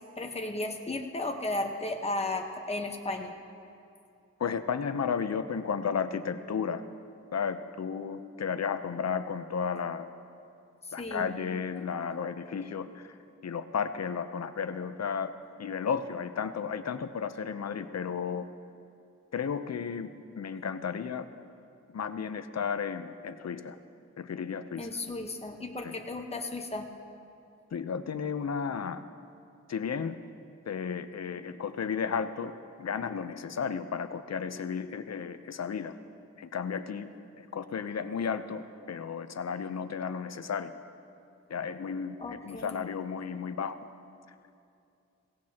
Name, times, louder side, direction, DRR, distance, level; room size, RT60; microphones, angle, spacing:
voice 1, 0.2-3.3 11.0-11.3 24.8-26.9 42.2-42.8, left 2 dB, 20° left, 3 dB, 1.2 m, -34 dB
voice 2, 4.4-6.8 7.3-10.1 10.9-13.1 13.4-15.3 15.6-18.5 19.3-21.3 21.9-23.8 24.2-24.9 25.8-25.9 27.7-29.0 29.7-30.2 30.7-32.5 32.8-35.9 36.4-37.1 37.4-40.7 41.5-43.8, left 6 dB, 60° left, 11 dB, 0.7 m, -33 dB
17.0 x 17.0 x 2.9 m, 2.5 s
cardioid pair, 55°, 29 cm